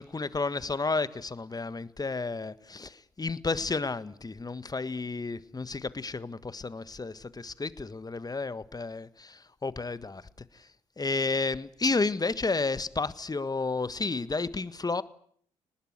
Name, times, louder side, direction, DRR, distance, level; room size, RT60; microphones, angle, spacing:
voice 1, 0.0-15.0, left 3 dB, 20° left, 1.5 m, -32 dB
29.5 x 20.0 x 8.0 m
hypercardioid pair, 50°, 17 cm